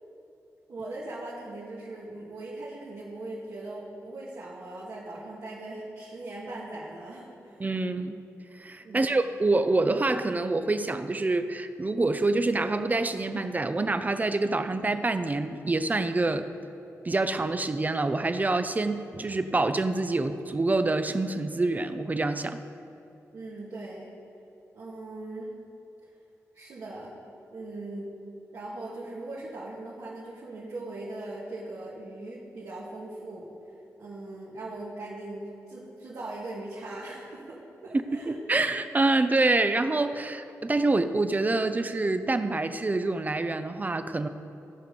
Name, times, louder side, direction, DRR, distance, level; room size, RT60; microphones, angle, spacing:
voice 1, 0.7-7.6 8.8-9.2 23.3-24.1 24.7-25.5 26.0-26.1 26.5-27.2 27.5-28.1 28.5-33.5 34.0-38.3, right 2 dB, 70° right, -8 dB, 1.8 m, -40 dB
voice 2, 7.6-8.2 8.6-16.5 17.0-22.6 37.9-44.3, right 2 dB, 30° right, 10 dB, 0.6 m, -26 dB
15.0 x 5.1 x 5.3 m, 2.8 s
cardioid pair, 70°, 6 cm